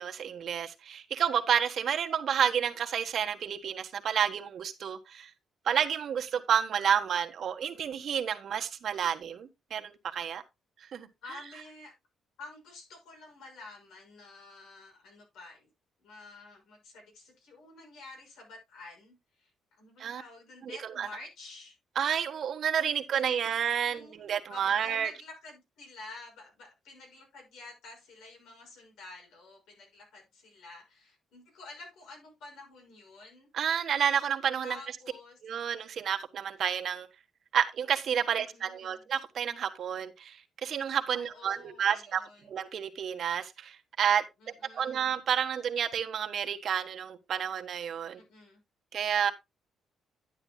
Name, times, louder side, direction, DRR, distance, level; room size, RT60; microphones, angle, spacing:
voice 1, 0.0-5.3 5.6-10.4 10.9-11.1 20.0-20.2 20.6-21.1 21.9-25.1 33.5-34.8 35.4-37.1 37.5-44.2 44.7-48.2 48.9-49.3, right 8 dB, 55° right, 1.3 m, -30 dB
voice 2, 11.2-11.9 12.4-15.7 16.0-19.5 19.8-21.8 22.9-23.4 23.8-24.2 24.5-33.5 34.6-35.4 38.3-39.0 41.1-42.5 44.4-45.0 48.2-48.6, left 3 dB, 85° left, 6.1 m, -50 dB
11.0 x 9.8 x 2.3 m
cardioid pair, 125°, 0 cm